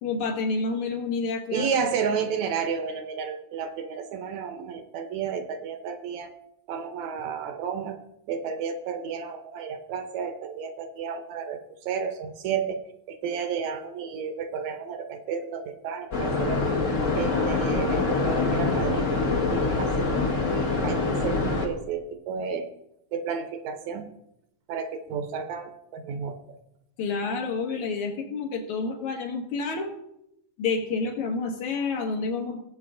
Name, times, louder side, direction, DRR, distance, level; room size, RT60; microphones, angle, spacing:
voice 1, 0.0-1.7 27.0-29.9 30.6-32.6, left 4 dB, 70° left, 1 dB, 3.2 m, -29 dB
voice 2, 1.5-6.3 6.7-8.0 8.3-12.8 13.1-16.7 17.1-19.1 19.5-20.2 20.5-22.7 23.1-24.1 24.7-26.4, right 6 dB, 70° right, 7 dB, 2.1 m, -32 dB
sound 1, 16.1-21.7, left 3 dB, 40° left, 1.1 m, -25 dB
18.0 x 8.0 x 3.9 m, 0.81 s
omnidirectional pair, 3.5 m